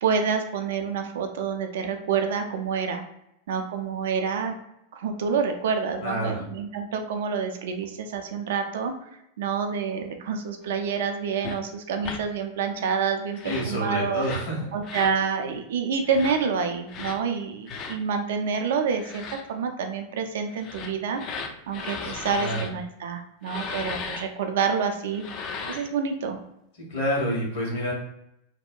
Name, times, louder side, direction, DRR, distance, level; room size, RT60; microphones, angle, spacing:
voice 1, 0.0-3.0 3.5-4.5 4.9-8.9 9.4-14.2 14.7-21.2 21.7-25.2 25.7-26.4, right 6 dB, 55° right, 5 dB, 0.3 m, -28 dB
voice 2, 6.0-6.4 13.4-14.6 22.0-22.6 26.9-27.9, equal, 60° left, -3 dB, 1.1 m, -28 dB
sound 1, 11.4-11.6 12.0-12.2 13.3-13.7 14.2-14.5 14.8-15.2 16.1-16.4 16.9-17.2 17.7-18.0 18.9-19.4 20.5-22.7 23.4-24.2 25.1-25.9, left 5 dB, 35° left, 0.3 m, -36 dB
2.7 x 2.1 x 2.2 m, 0.81 s
figure-of-eight pair, 90°, 0 cm